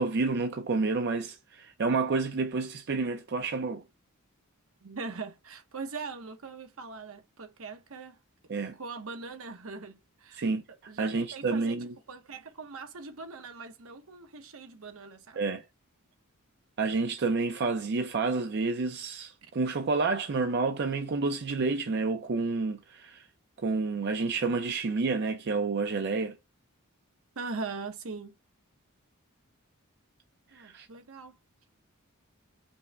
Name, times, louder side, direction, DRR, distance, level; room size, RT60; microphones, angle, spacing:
voice 1, 0.0-3.8 8.5-8.8 10.3-10.6 11.0-11.9 15.4-15.6 16.8-23.3 23.6-26.4 30.5-30.9, right 3 dB, 50° right, 0.5 m, -29 dB
voice 2, 4.8-8.2 8.8-10.5 10.9-11.8 12.1-15.4 27.4-28.3 30.5-31.4, right 4 dB, 70° right, 0.9 m, -41 dB
5.3 x 2.1 x 3.3 m
head